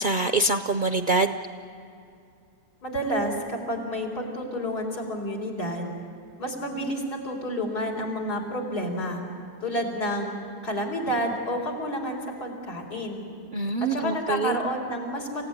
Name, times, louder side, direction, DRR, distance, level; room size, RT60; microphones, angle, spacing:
voice 1, 0.0-1.3 13.5-14.6, right 2 dB, 55° right, 8 dB, 0.5 m, -24 dB
voice 2, 2.8-5.9 6.4-9.2 9.6-13.2 13.8-15.5, equal, 90° left, 0 dB, 4.5 m, -30 dB
28.0 x 16.0 x 9.6 m, 2.6 s
omnidirectional pair, 1.7 m